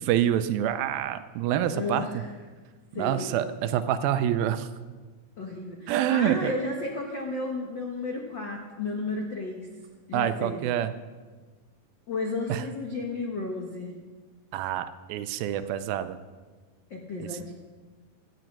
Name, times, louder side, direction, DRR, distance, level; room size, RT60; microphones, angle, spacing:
voice 1, 0.0-2.1 2.9-4.7 5.9-6.5 10.1-10.9 12.5-12.6 14.5-16.2 17.2-17.3, right 11 dB, 80° right, 11 dB, 2.3 m, -27 dB
voice 2, 1.7-2.3 2.9-3.4 5.4-9.7 10.1-10.7 12.1-14.0 16.9-17.5, left 2 dB, 85° left, 1 dB, 1.0 m, -33 dB
17.0 x 12.0 x 6.0 m, 1.4 s
omnidirectional pair, 4.4 m